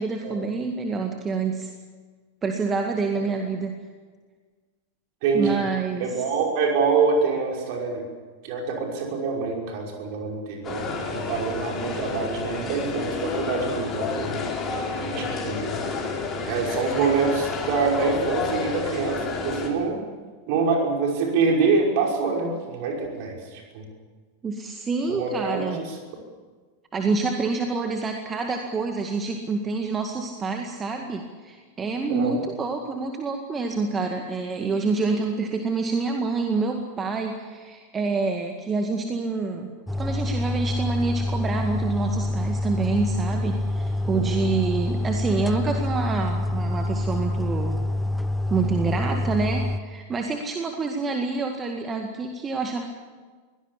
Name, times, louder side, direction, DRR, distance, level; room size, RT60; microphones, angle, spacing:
voice 1, 0.0-1.7 2.4-3.8 5.3-6.1 24.4-25.8 26.9-39.7 40.0-47.8 48.5-52.8, right 4 dB, 20° right, 4 dB, 2.0 m, -27 dB
voice 2, 5.2-5.7 6.0-8.0 8.4-14.4 15.0-15.7 16.4-20.0 20.5-23.8 25.1-26.0 32.1-32.4 44.1-44.4 49.0-49.2, right 4 dB, 45° right, 0 dB, 5.7 m, -25 dB
sound 1, 10.6-19.7, left 4 dB, 25° left, 4.8 m, -30 dB
sound 2, 39.9-49.8, left 1 dB, ahead, 1.1 m, -26 dB
23.0 x 18.0 x 8.5 m, 1.5 s
figure-of-eight pair, 90°, 0 cm